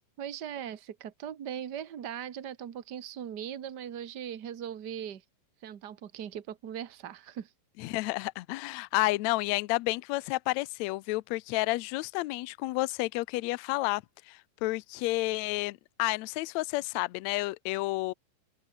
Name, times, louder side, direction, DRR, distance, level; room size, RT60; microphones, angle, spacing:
voice 1, 0.2-5.2 5.6-7.5, right 9 dB, 75° right, 0.9 m, -39 dB
voice 2, 7.8-18.1, left 21 dB, 80° left, 1.6 m, -31 dB
open air
omnidirectional pair, 3.9 m